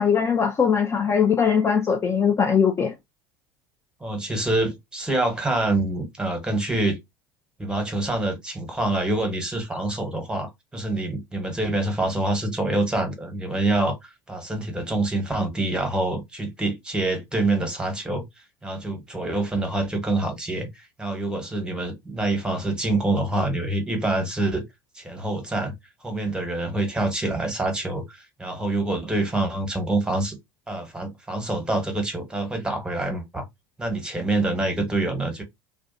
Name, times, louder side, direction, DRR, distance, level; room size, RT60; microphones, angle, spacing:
voice 1, 0.0-2.9, left 7 dB, 25° left, 0.4 m, -20 dB
voice 2, 4.0-7.0 7.6-18.2 18.6-24.6 24.9-25.7 26.0-30.4 30.7-33.4 33.8-35.4, right 2 dB, 5° right, 1.1 m, -26 dB
2.4 x 2.2 x 2.6 m
hypercardioid pair, 80°, 12 cm